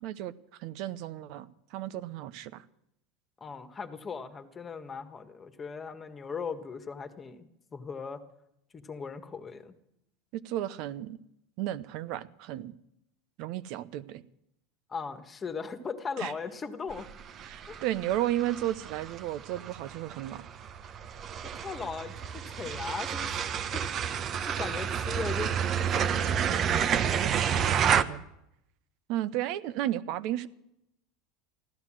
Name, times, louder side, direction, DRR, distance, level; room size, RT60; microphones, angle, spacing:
voice 1, 0.0-0.3 0.6-2.6 10.3-11.2 11.6-12.7 13.4-14.2 16.2-16.3 17.4-20.4 27.0-28.2 29.1-30.5, right 13 dB, 60° right, 0.8 m, -34 dB
voice 2, 3.4-8.2 8.7-9.8 14.9-17.1 17.7-17.8 21.4-24.1 24.4-26.5 26.9-27.0, left 5 dB, 25° left, 1.6 m, -39 dB
sound 1, 16.9-28.0, right 8 dB, 40° right, 0.9 m, -30 dB
15.0 x 12.0 x 7.6 m
supercardioid pair, 110°, 0 cm